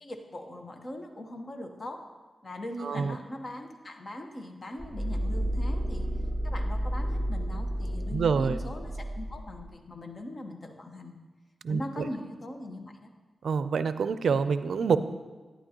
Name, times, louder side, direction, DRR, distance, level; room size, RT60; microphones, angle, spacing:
voice 1, 0.0-2.0 2.4-6.1 6.4-11.1 11.7-13.1, left 1 dB, 45° left, 4 dB, 1.1 m, -40 dB
voice 2, 2.8-3.1 8.1-8.6 11.6-12.1 13.4-15.0, right 5 dB, 85° right, 12 dB, 0.4 m, -26 dB
sound 1, 4.8-9.7, equal, 30° left, 3.0 m, -31 dB
11.5 x 10.0 x 2.9 m, 1.3 s
cardioid pair, 80°, 0 cm